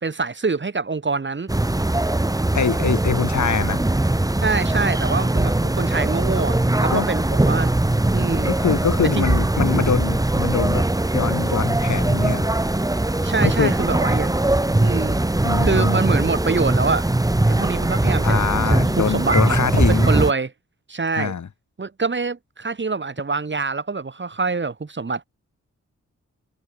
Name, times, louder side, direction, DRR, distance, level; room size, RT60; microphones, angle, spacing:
voice 1, 0.0-1.5 4.4-7.7 8.1-8.5 9.1-9.3 13.2-14.3 14.8-15.2 15.6-17.1 17.5-20.5 20.9-21.3 21.8-25.3, right 4 dB, 40° right, 3.0 m, -25 dB
sound 1, 1.5-20.3, right 1 dB, 10° right, 1.6 m, -20 dB
voice 2, 2.5-3.8 6.9-7.1 8.5-10.8 11.1-12.5 13.4-13.7 15.4-16.0 18.2-20.1 21.1-21.5, left 6 dB, 75° left, 3.0 m, -23 dB
wide cardioid pair, 155°, 29 cm